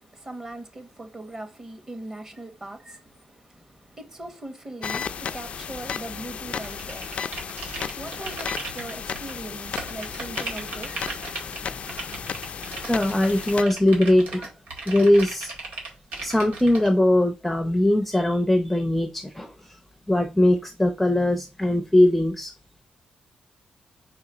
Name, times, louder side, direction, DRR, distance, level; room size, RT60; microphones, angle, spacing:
voice 1, 0.0-11.0, right 2 dB, 25° right, 1.3 m, -40 dB
sound 1, 4.8-13.6, left 7 dB, 55° left, 0.4 m, -34 dB
sound 2, 6.6-9.3 9.8-16.9, right 3 dB, 90° right, 2.0 m, -37 dB
voice 2, 11.4-11.8 12.9-14.5 14.9-15.5 16.2-19.5 20.1-22.5, left 1 dB, 5° left, 0.7 m, -21 dB
4.5 x 4.2 x 4.9 m
cardioid pair, 130°, 3 cm